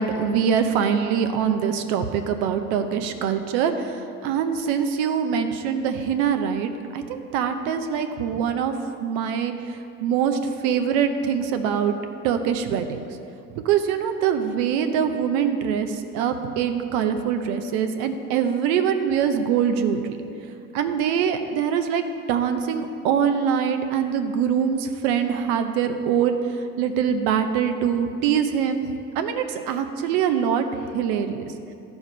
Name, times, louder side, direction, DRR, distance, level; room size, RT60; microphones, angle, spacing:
voice 1, 0.0-8.7 9.0-11.9 12.2-13.0 13.5-20.2 20.7-28.8 29.1-30.6 30.9-31.4, right 7 dB, 85° right, 7 dB, 0.8 m, -24 dB
12.5 x 4.7 x 5.4 m, 2.6 s
supercardioid pair, 80°, 30 cm